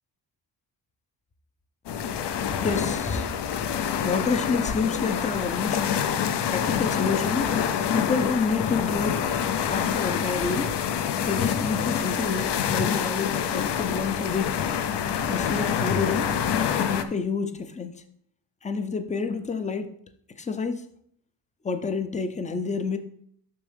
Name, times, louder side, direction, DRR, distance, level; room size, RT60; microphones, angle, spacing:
sound 1, 1.9-17.0, left 8 dB, 70° left, 0.6 m, -26 dB
voice 1, 2.6-3.3 4.0-5.9 6.4-7.5 7.9-10.8 11.2-14.7 15.3-16.3 16.7-18.0 18.6-19.9 20.3-20.8 21.6-23.0, left 4 dB, 20° left, 0.3 m, -29 dB
6.9 x 6.2 x 3.3 m
wide cardioid pair, 175°, 42 cm